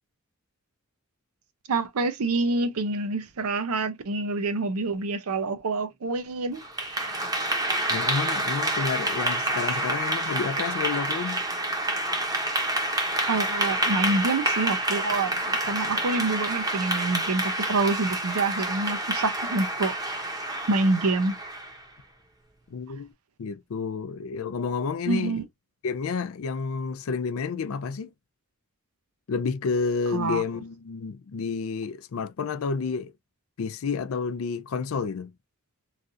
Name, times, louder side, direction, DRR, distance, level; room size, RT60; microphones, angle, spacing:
voice 1, 1.7-6.6 6.9-7.4 13.3-20.3 20.7-21.3 25.1-25.4 30.1-30.4, right 3 dB, 85° right, 0.6 m, -27 dB
Clapping / Applause, 6.6-21.8, right 1 dB, 15° right, 0.7 m, -28 dB
voice 2, 7.9-11.4 22.7-23.1 23.4-25.4 25.8-28.1 29.3-33.1 33.6-35.3, left 5 dB, 75° left, 0.4 m, -30 dB
3.1 x 2.4 x 2.5 m
head